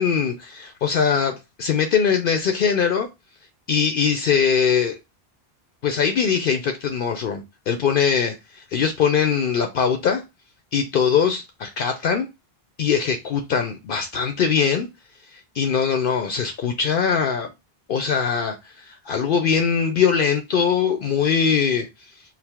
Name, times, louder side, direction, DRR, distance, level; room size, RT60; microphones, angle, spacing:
voice 1, 0.0-3.1 3.7-5.0 5.8-10.2 10.7-12.3 12.8-14.9 15.3-17.5 17.9-21.9, left 6 dB, 65° left, 0.7 m, -21 dB
4.6 x 2.0 x 3.4 m
omnidirectional pair, 1.0 m